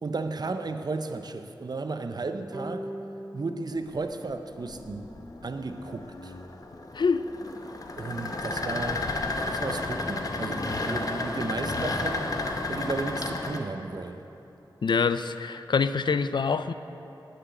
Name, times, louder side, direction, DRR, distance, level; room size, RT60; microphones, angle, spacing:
voice 1, 0.0-2.9 3.3-5.1 5.4-6.3 8.0-12.4 12.7-14.2, right 3 dB, 55° right, 8 dB, 0.6 m, -34 dB
sound 1, 2.5-5.8, equal, 30° right, 1.1 m, -42 dB
sound 2, 3.8-13.6, left 2 dB, 45° left, 0.8 m, -32 dB
voice 2, 14.8-16.7, left 5 dB, 65° left, 12 dB, 0.3 m, -25 dB
9.6 x 5.9 x 7.9 m, 3.0 s
wide cardioid pair, 70°, 8 cm